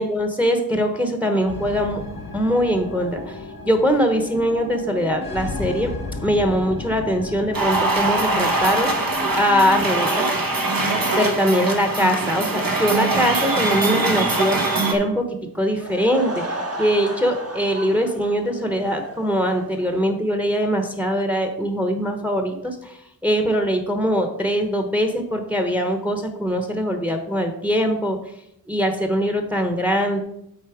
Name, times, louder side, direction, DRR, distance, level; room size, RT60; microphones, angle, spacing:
voice 1, 0.0-2.0 2.3-5.9 6.2-10.3 11.2-14.6 14.9-28.2 28.7-30.2, equal, 5° right, 5 dB, 0.9 m, -22 dB
sound 1, 1.4-9.8, left 3 dB, 75° left, 1.2 m, -34 dB
sound 2, 7.5-15.0, right 2 dB, 65° right, 1.1 m, -22 dB
Laughter / Crowd, 15.6-20.2, right 1 dB, 40° right, 1.2 m, -34 dB
8.2 x 4.0 x 4.9 m, 0.78 s
wide cardioid pair, 80°, 38 cm